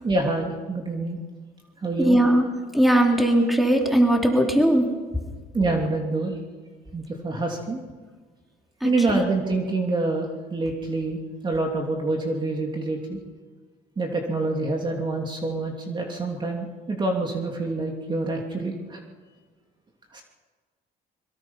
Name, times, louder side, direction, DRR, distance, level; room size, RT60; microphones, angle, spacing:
voice 1, 0.0-1.2 1.8-2.2 5.5-6.4 6.9-7.8 8.8-13.2 14.0-19.0 20.1-20.2, right 2 dB, 25° right, 1 dB, 3.1 m, -26 dB
voice 2, 2.0-2.5 2.7-4.9 8.8-9.2, right 1 dB, ahead, 1 dB, 3.8 m, -19 dB
23.5 x 23.0 x 5.8 m, 1.4 s
cardioid pair, 110°, 17 cm